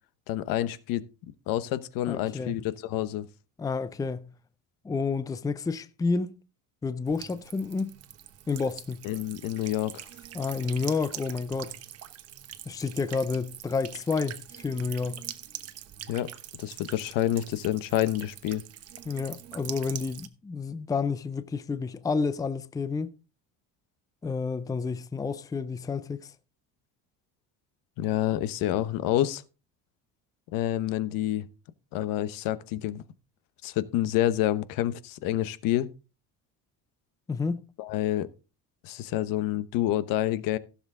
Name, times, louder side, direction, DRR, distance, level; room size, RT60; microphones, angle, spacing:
voice 1, 0.3-1.1 1.5-3.3 9.0-10.1 16.1-16.3 16.6-18.6 28.0-29.4 30.5-31.5 31.9-33.0 33.6-35.9 37.8-38.3 38.8-40.6, left 13 dB, 70° left, 1.0 m, -28 dB
voice 2, 2.1-2.6 3.6-4.3 4.8-6.3 6.8-7.9 8.5-9.1 10.3-11.7 12.7-15.2 19.1-23.1 24.2-26.3 37.3-37.6, left 4 dB, 10° left, 0.5 m, -30 dB
Buzz / Water tap faucet / Trickle dribble, 7.1-20.3, right 11 dB, 45° right, 1.1 m, -44 dB
16.0 x 7.3 x 3.7 m
cardioid pair, 145°, 35 cm